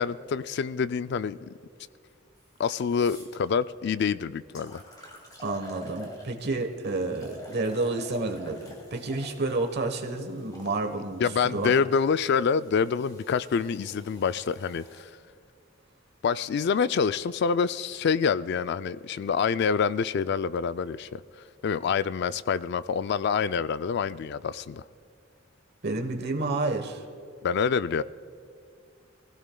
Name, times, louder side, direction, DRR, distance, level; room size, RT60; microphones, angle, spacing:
voice 1, 0.0-1.5 2.6-4.8 11.2-15.1 16.2-21.2 21.6-24.8 27.4-28.0, left 6 dB, 60° left, 15 dB, 0.3 m, -26 dB
sound 1, 2.4-2.5 2.9-3.4 4.1-4.2 4.5-6.6 7.1-10.8 11.6-15.0, left 1 dB, 20° left, 2.2 m, -47 dB
voice 2, 5.4-11.7 25.8-27.0, right 2 dB, 60° right, 4 dB, 1.1 m, -30 dB
23.5 x 16.5 x 2.3 m, 2.3 s
head